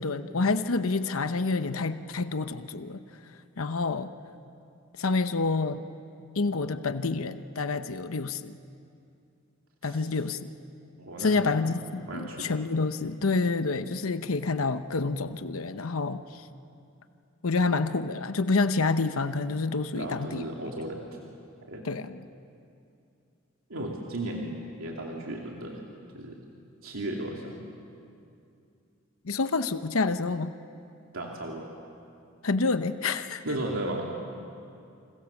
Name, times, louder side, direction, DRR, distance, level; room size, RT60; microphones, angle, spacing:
voice 1, 0.0-3.0 3.6-4.1 5.0-5.8 6.3-8.6 9.8-10.4 11.2-16.5 17.4-20.4 21.8-22.3 29.2-30.5 32.4-33.4, left 3 dB, 85° left, 10 dB, 0.9 m, -28 dB
voice 2, 11.0-11.6 12.1-12.5 20.0-21.1 21.7-21.9 23.7-25.8 26.1-26.4 26.8-27.6 31.1-31.7 33.4-34.1, right 1 dB, 85° right, -1 dB, 2.8 m, -35 dB
29.5 x 27.5 x 7.2 m, 2.5 s
head